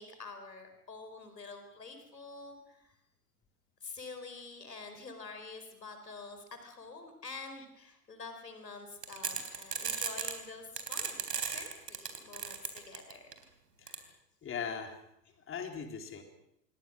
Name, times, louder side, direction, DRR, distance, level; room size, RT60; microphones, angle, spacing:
voice 1, 0.0-2.9 3.8-13.3, left 4 dB, 85° left, 7 dB, 4.6 m, -47 dB
sound 1, 9.0-10.4 10.8-13.3 13.9-14.0, right 6 dB, 80° right, 3.7 m, -35 dB
voice 2, 13.8-14.1 14.4-15.0 15.5-16.2, left 6 dB, 25° left, 5 dB, 3.7 m, -39 dB
27.0 x 22.5 x 6.3 m, 0.77 s
figure-of-eight pair, 90°, 48 cm